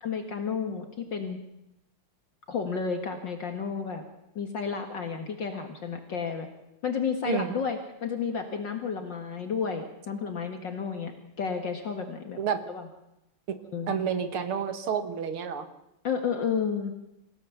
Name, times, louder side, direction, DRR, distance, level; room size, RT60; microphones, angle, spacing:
voice 1, 0.0-1.4 2.5-4.0 4.4-6.5 6.8-11.1 11.4-12.4 12.7-12.9 13.7-13.9 16.0-16.9, left 6 dB, 55° left, 5 dB, 2.3 m, -31 dB
voice 2, 7.2-7.5 12.4-12.6 13.5-13.6 13.9-15.7, right 7 dB, 75° right, 9 dB, 2.5 m, -29 dB
27.5 x 16.5 x 7.1 m, 0.88 s
omnidirectional pair, 2.4 m